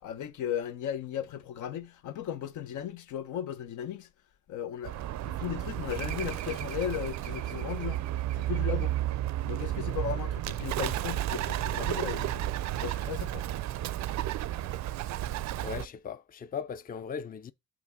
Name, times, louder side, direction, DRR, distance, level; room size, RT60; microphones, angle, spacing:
voice 1, 0.0-4.1 4.5-8.0 8.4-9.0 9.4-12.5 12.8-13.5, left 10 dB, 85° left, 0.9 m, -36 dB
Bird, 4.8-15.9, right 13 dB, 65° right, 0.5 m, -32 dB
voice 2, 15.6-17.5, left 6 dB, 30° left, 0.5 m, -38 dB
6.1 x 3.5 x 6.0 m
cardioid pair, 90°, 30 cm